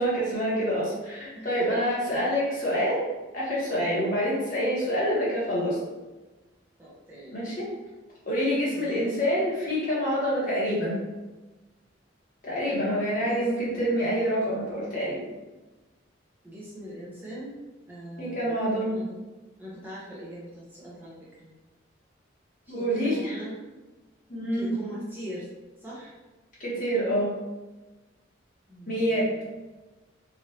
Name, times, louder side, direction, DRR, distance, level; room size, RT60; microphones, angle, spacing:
voice 1, 0.0-3.0 3.3-5.8 7.3-7.7 8.2-11.0 12.4-15.2 18.2-19.0 22.7-23.4 24.3-24.7 26.6-27.3 28.9-29.4, equal, 45° left, -7 dB, 1.2 m, -27 dB
voice 2, 1.3-1.8 6.8-7.3 8.7-8.9 13.2-13.4 16.4-18.6 18.9-19.2 19.6-21.5 22.7-23.5 24.5-25.5 25.8-26.1 28.7-29.4, equal, 10° right, -8 dB, 0.6 m, -41 dB
3.2 x 2.5 x 2.7 m, 1.1 s
head